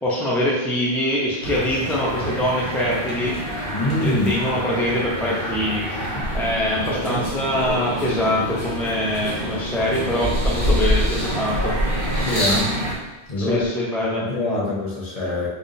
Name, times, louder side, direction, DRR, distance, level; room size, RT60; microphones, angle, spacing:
voice 1, 0.0-3.4 4.0-11.8 13.4-14.2, equal, ahead, -6 dB, 0.4 m, -24 dB
sound 1, 1.4-12.9, equal, 75° left, 1.1 m, -29 dB
voice 2, 3.7-4.3 6.1-6.2 12.2-12.7 13.3-13.6 14.0-15.5, left 2 dB, 35° left, -6 dB, 1.1 m, -24 dB
sound 2, 6.2-8.0 8.6-9.7 10.1-12.7 13.6-13.7, equal, 25° right, 1.4 m, -25 dB
4.6 x 2.2 x 3.3 m, 1.1 s
omnidirectional pair, 1.1 m